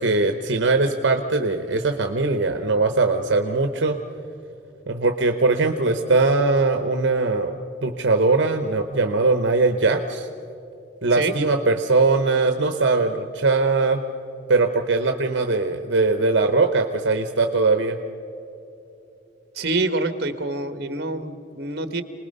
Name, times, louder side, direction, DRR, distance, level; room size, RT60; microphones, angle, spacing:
voice 1, 0.0-4.0 4.9-10.3 11.0-14.0 14.5-18.0, right 3 dB, 70° right, 6 dB, 0.9 m, -21 dB
voice 2, 19.5-22.0, right 2 dB, 55° right, 10 dB, 1.2 m, -26 dB
28.0 x 20.0 x 5.4 m, 2.9 s
head